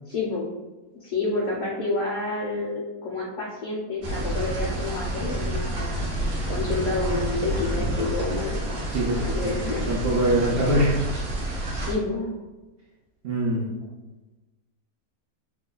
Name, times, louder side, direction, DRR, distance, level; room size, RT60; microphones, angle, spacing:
voice 1, 0.1-0.5 1.0-6.0 6.5-8.6 9.2-9.8 11.7-12.3, left 3 dB, 60° left, -3 dB, 0.9 m, -29 dB
sound 1, 4.0-11.9, right 1 dB, 50° right, 0.7 m, -29 dB
voice 2, 8.9-9.5 9.9-11.0 13.2-13.7, right 1 dB, 90° right, -5 dB, 0.5 m, -23 dB
2.9 x 2.2 x 3.8 m, 1.1 s
omnidirectional pair, 1.7 m